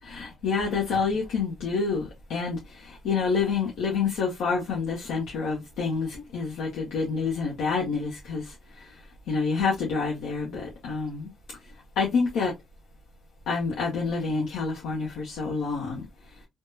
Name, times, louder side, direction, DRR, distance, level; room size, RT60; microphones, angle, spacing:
voice 1, 0.0-11.3 11.6-12.5 13.5-16.5, left 5 dB, 85° left, 0.7 m, -28 dB
3.5 x 2.1 x 2.6 m
cardioid pair, 90°, 0 cm